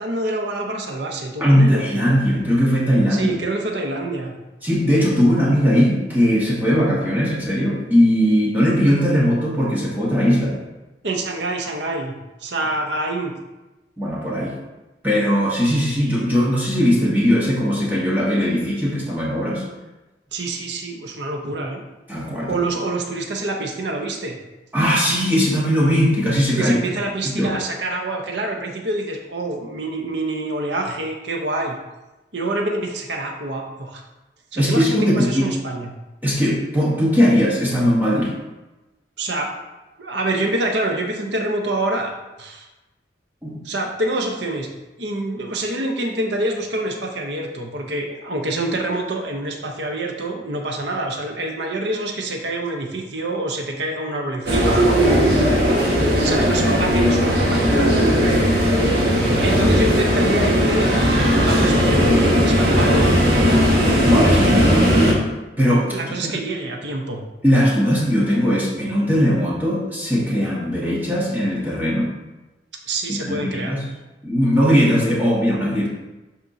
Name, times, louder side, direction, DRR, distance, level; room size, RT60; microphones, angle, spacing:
voice 1, 0.0-2.2 3.1-4.3 11.0-13.3 20.3-21.8 22.5-24.4 26.5-31.8 32.3-34.0 34.5-35.9 39.2-39.5 40.0-42.7 43.6-44.7 45.0-54.9 56.2-57.9 59.4-61.0 61.4-63.3 65.8-67.2 72.9-73.8, right 2 dB, 75° right, 2 dB, 0.9 m, -26 dB
voice 2, 1.4-3.3 4.6-10.6 14.0-14.5 15.0-19.6 22.1-22.6 24.7-26.7 27.2-27.5 34.5-35.5 36.2-38.3 43.4-43.6 55.1-55.5 64.0-65.2 65.6-66.3 67.4-72.1 73.1-73.8 74.2-75.9, equal, 10° right, -6 dB, 1.3 m, -19 dB
sound 1, 54.5-65.1, equal, 60° right, 1.6 m, -17 dB
12.0 x 4.4 x 2.7 m, 1.1 s
head